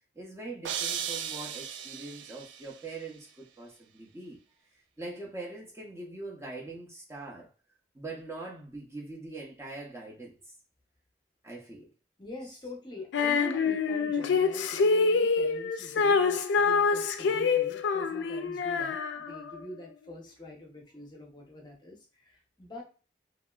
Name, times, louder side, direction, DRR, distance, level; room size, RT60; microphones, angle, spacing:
voice 1, 0.1-4.4 5.0-7.5 7.9-10.5 11.4-11.9 12.4-12.5, right 2 dB, 15° right, 0.6 m, -42 dB
sound 1, 0.6-2.7, right 8 dB, 90° right, 0.3 m, -36 dB
voice 2, 12.2-22.8, left 1 dB, 25° left, 0.7 m, -45 dB
Female singing, 13.1-19.6, left 4 dB, 80° left, 0.3 m, -26 dB
3.0 x 2.7 x 2.3 m
head